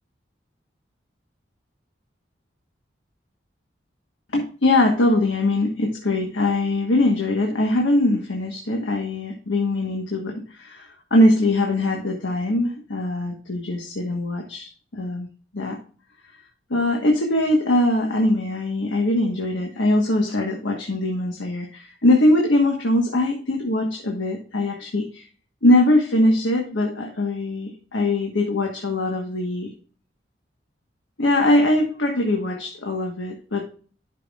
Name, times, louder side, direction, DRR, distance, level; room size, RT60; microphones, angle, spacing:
voice 1, 4.3-15.3 15.5-15.8 16.7-25.3 25.6-29.7 31.2-33.6, left 1 dB, 85° left, 1 dB, 1.3 m, -21 dB
11.5 x 6.0 x 2.4 m, 0.42 s
head